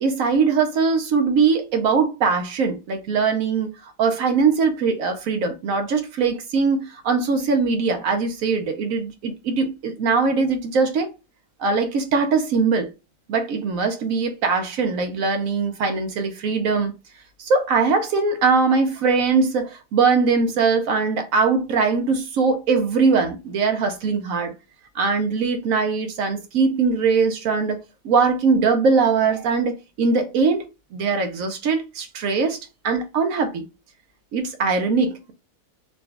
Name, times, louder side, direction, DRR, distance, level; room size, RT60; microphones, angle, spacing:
voice 1, 0.0-11.1 11.6-12.9 13.3-16.9 17.4-24.5 24.9-27.8 28.0-32.6 32.8-33.6 34.3-35.3, right 4 dB, 65° right, 1.0 m, -21 dB
4.0 x 2.3 x 3.3 m
omnidirectional pair, 1.7 m